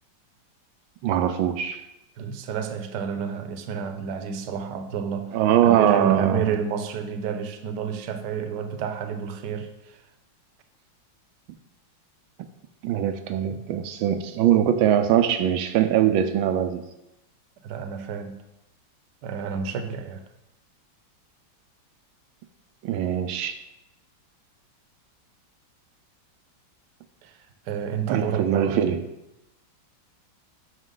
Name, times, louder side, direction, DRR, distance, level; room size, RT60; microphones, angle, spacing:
voice 1, 1.0-1.8 5.3-6.4 12.8-16.8 22.8-23.6 28.1-29.0, right 10 dB, 85° right, 8 dB, 1.4 m, -22 dB
voice 2, 2.2-10.0 17.6-18.4 19.2-20.2 27.2-27.4 27.7-29.0, right 6 dB, 65° right, 7 dB, 1.3 m, -30 dB
11.5 x 6.0 x 3.8 m, 0.88 s
omnidirectional pair, 2.2 m